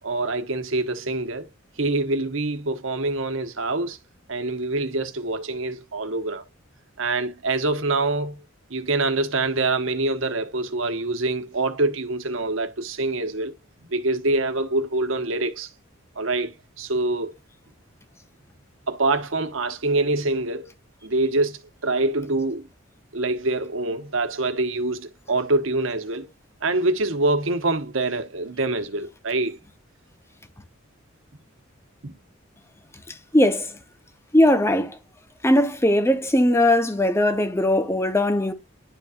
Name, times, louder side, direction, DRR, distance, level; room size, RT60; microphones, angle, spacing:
voice 1, 0.0-1.5 1.8-4.0 4.3-6.4 7.0-8.4 8.7-13.5 13.9-15.7 16.2-17.4 18.9-20.7 21.0-22.7 23.1-26.3 26.6-29.6 32.0-32.1, right 2 dB, 70° right, 1.2 m, -25 dB
voice 2, 33.1-33.8 34.3-35.0 35.4-38.5, left 1 dB, 15° left, 0.9 m, -19 dB
11.0 x 4.2 x 2.5 m
head